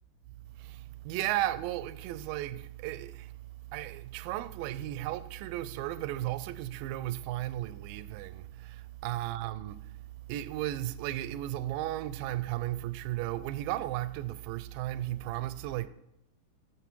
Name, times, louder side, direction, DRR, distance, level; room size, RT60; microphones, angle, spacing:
voice 1, 0.6-9.8 10.3-15.9, right 14 dB, 80° right, 2.2 m, -35 dB
16.0 x 7.1 x 4.6 m
omnidirectional pair, 4.3 m